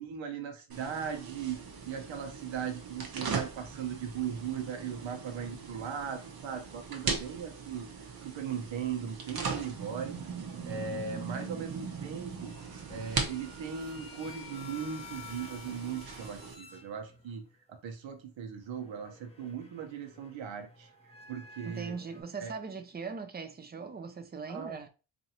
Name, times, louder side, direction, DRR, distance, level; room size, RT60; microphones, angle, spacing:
voice 1, 0.0-7.9 8.2-10.2 10.6-12.5 12.9-20.9 21.3-21.9 22.4-22.5 24.5-24.8, right 7 dB, 75° right, 1.0 m, -38 dB
sound 1, 0.7-16.5, right 5 dB, 50° right, 0.9 m, -40 dB
sound 2, 10.6-17.5 18.6-22.2, left 4 dB, 15° left, 0.8 m, -51 dB
voice 2, 21.6-24.9, right 5 dB, 20° right, 0.5 m, -40 dB
4.3 x 2.7 x 2.9 m
wide cardioid pair, 130°, 46 cm